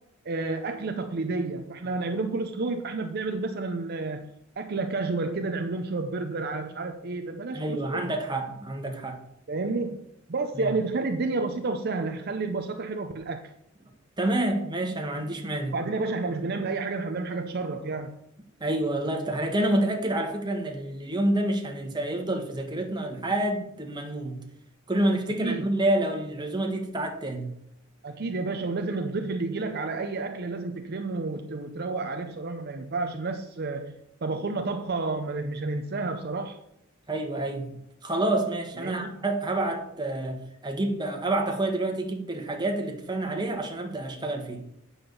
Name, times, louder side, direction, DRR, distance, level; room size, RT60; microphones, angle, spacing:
voice 1, 0.2-4.3 4.6-8.1 9.5-13.5 15.7-18.2 25.4-25.6 28.0-34.0 34.2-36.6 38.8-39.2, right 3 dB, 50° right, 6 dB, 0.6 m, -30 dB
voice 2, 7.5-9.2 10.5-10.7 14.2-15.8 18.6-24.4 24.9-27.5 37.1-37.7 38.0-44.6, right 1 dB, 20° right, 3 dB, 1.4 m, -28 dB
8.7 x 5.7 x 6.9 m, 0.78 s
head